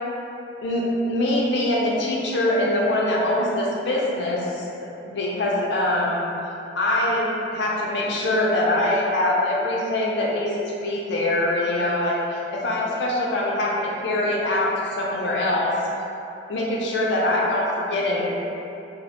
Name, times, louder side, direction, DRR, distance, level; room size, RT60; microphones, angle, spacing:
voice 1, 0.6-6.2 6.8-10.5 10.8-15.7 16.5-18.3, left 1 dB, 75° left, -4 dB, 0.4 m, -23 dB
2.3 x 2.0 x 2.8 m, 2.9 s
head